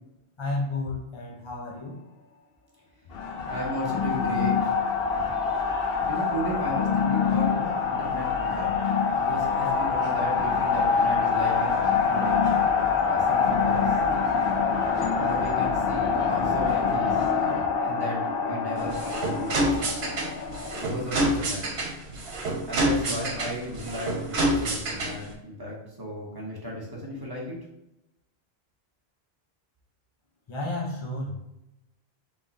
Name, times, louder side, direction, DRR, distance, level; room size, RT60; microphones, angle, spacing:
voice 1, 0.4-2.0 5.2-5.3 30.5-31.4, left 2 dB, 30° left, -3 dB, 0.6 m, -32 dB
sound 1, 3.1-20.8, left 5 dB, 65° left, 0.8 m, -25 dB
voice 2, 3.4-4.7 6.1-11.8 12.1-12.4 13.0-14.0 15.2-17.3 17.8-19.7 20.8-21.6 22.7-27.6, equal, 20° right, -3 dB, 1.1 m, -35 dB
sound 2, 18.8-25.3, right 1 dB, 70° right, 1.1 m, -28 dB
3.6 x 3.2 x 4.0 m, 0.88 s
omnidirectional pair, 1.1 m